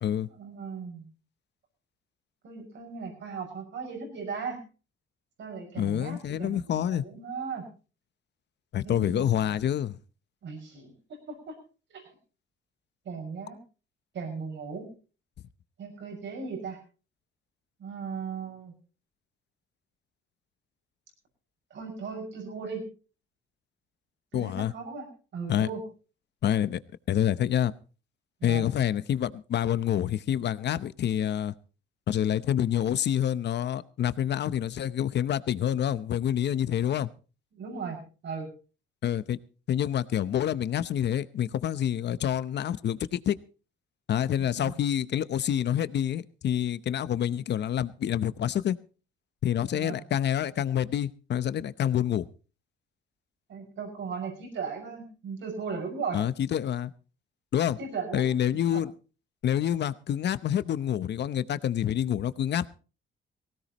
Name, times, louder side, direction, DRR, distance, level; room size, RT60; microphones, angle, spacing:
voice 1, 0.3-1.1 2.4-4.6 5.4-7.7 8.8-9.6 10.4-10.9 11.3-11.5 11.9-12.0 13.0-13.6 14.1-14.9 15.8-16.8 17.8-18.7 21.7-22.8 24.3-25.1 25.3-25.8 28.4-28.7 37.5-38.5 44.5-44.7 49.7-50.0 53.5-56.2 57.8-58.3 58.7-58.8, right 5 dB, 65° right, 3 dB, 6.2 m, -37 dB
voice 2, 5.8-7.0 8.7-10.0 24.3-24.7 25.5-25.7 26.4-26.8 27.1-27.7 28.4-31.5 32.1-37.1 39.0-39.4 39.7-43.4 44.1-48.8 49.4-52.2 56.1-56.9 57.5-57.8 58.1-58.9 59.4-62.7, left 10 dB, 60° left, 15 dB, 0.8 m, -27 dB
19.0 x 16.5 x 3.0 m, 0.36 s
cardioid pair, 90°, 20 cm